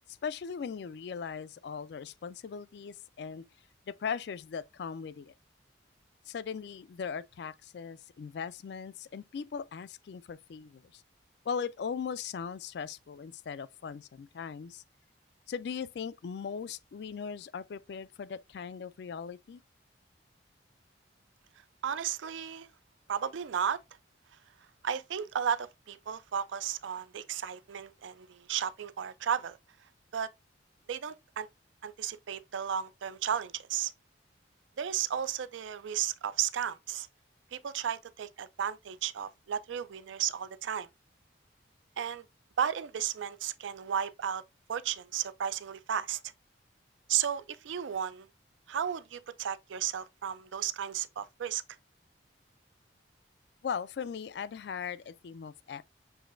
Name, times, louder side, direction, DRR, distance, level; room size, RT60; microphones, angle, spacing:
voice 1, 0.2-3.4 3.9-5.3 6.3-11.0 11.5-14.8 15.5-19.6 53.6-55.8, left 6 dB, 60° left, 0.3 m, -39 dB
voice 2, 21.8-22.7 23.1-23.8 24.8-29.6 30.1-30.3 30.9-31.5 31.8-33.9 34.8-37.1 37.5-40.9 42.0-42.2 42.6-44.4 44.7-46.2 47.1-48.3 48.7-51.6, right 9 dB, 80° right, 0.4 m, -34 dB
7.0 x 3.1 x 2.5 m
head